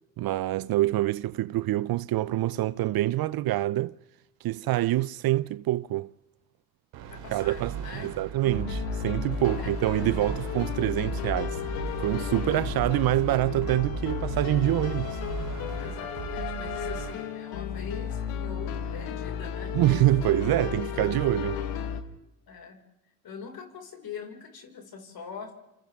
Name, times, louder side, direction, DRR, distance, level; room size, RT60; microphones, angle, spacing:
voice 1, 0.2-4.0 4.4-6.1 7.3-7.7 8.0-11.6 12.0-15.2 19.7-21.6, right 15 dB, 55° right, 0.7 m, -26 dB
sound 1, 6.9-17.1, right 8 dB, 80° right, 3.9 m, -38 dB
voice 2, 7.1-8.1 9.6-9.7 15.8-19.8 22.5-22.8 23.2-25.6, left 6 dB, 55° left, 5.5 m, -43 dB
sound 2, 8.4-22.0, left 8 dB, 90° left, 1.8 m, -33 dB
29.0 x 28.0 x 3.7 m
supercardioid pair, 75°, 42 cm